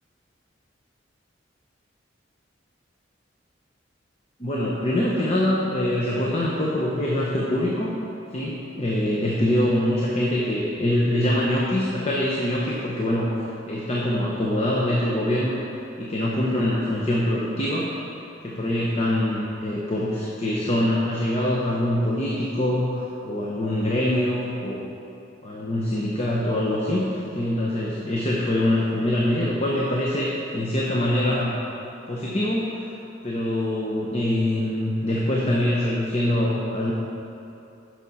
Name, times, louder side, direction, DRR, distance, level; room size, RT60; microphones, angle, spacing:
voice 1, 4.4-7.9 8.3-15.6 16.0-17.9 18.4-24.8 25.4-31.6 32.1-32.9 33.2-36.9, left 1 dB, 35° left, -4 dB, 0.8 m, -24 dB
10.0 x 6.3 x 4.1 m, 2.7 s
head